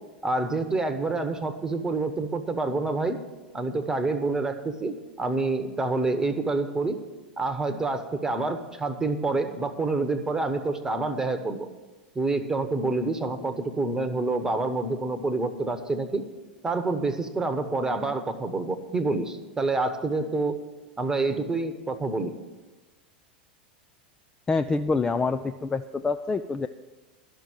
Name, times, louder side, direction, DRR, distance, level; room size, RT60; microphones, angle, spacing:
voice 1, 0.2-3.2 3.5-7.0 7.4-11.7 12.1-16.2 16.6-20.6 21.0-22.3, right 3 dB, 10° right, 8 dB, 1.1 m, -27 dB
voice 2, 24.5-26.7, left 4 dB, 10° left, 9 dB, 0.3 m, -26 dB
12.5 x 6.1 x 9.0 m, 1.2 s
figure-of-eight pair, 85°, 5 cm